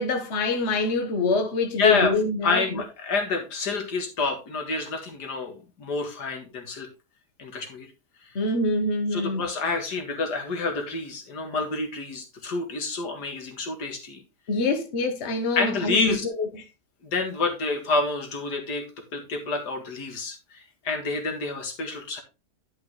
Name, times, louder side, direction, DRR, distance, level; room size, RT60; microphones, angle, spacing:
voice 1, 0.0-2.6 8.3-9.5 14.5-16.6, left 3 dB, 45° left, 1.3 m, -25 dB
voice 2, 1.8-6.9 7.4-7.9 9.1-14.2 15.6-16.3 17.0-18.9 19.1-22.2, left 3 dB, 80° left, 2.3 m, -28 dB
11.0 x 5.9 x 3.0 m
omnidirectional pair, 1.8 m